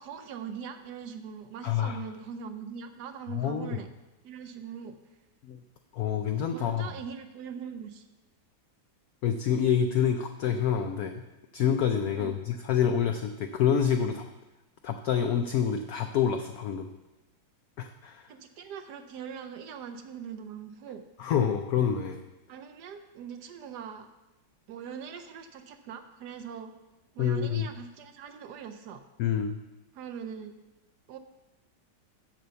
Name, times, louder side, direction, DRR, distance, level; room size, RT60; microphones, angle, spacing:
voice 1, 0.0-3.9 4.2-5.0 6.5-8.1 12.1-12.3 18.3-21.0 22.5-24.1 24.7-26.7 27.1-29.0 29.9-30.5 31.1-31.2, right 7 dB, 70° right, 7 dB, 1.1 m, -41 dB
voice 2, 1.6-2.0 3.3-3.8 5.4-5.6 5.9-6.9 9.2-11.2 11.5-14.3 14.8-16.9 17.8-18.3 21.2-22.2 27.2-27.7 29.2-29.6, left 8 dB, 75° left, 6 dB, 0.8 m, -27 dB
7.6 x 6.9 x 6.8 m, 1.0 s
omnidirectional pair, 2.2 m